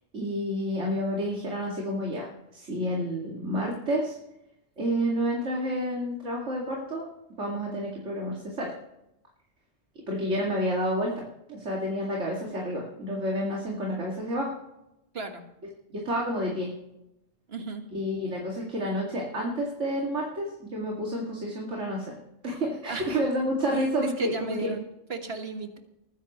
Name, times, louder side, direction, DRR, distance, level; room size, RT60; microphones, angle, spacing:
voice 1, 0.1-2.3 2.5-4.2 4.8-7.1 7.4-8.7 10.1-14.5 15.9-16.7 17.9-22.1 22.4-24.7, equal, 80° right, -2 dB, 2.6 m, -29 dB
voice 2, 17.5-17.8 22.9-23.2 23.7-24.8 25.1-25.8, right 4 dB, 55° right, 5 dB, 1.7 m, -35 dB
21.0 x 10.0 x 3.1 m, 0.87 s
omnidirectional pair, 1.2 m